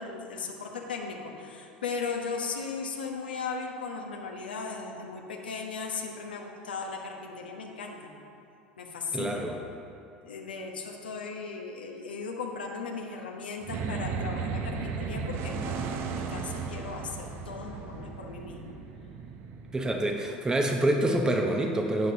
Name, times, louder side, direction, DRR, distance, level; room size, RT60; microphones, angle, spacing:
voice 1, 0.0-8.1 8.8-9.5 10.2-18.8, left 4 dB, 80° left, 0 dB, 1.0 m, -37 dB
voice 2, 9.1-9.6 19.7-22.1, right 1 dB, 15° right, 2 dB, 0.9 m, -26 dB
sound 1, 13.6-20.2, right 5 dB, 50° right, 0.8 m, -35 dB
13.0 x 9.2 x 2.8 m, 2.6 s
figure-of-eight pair, 75°, 5 cm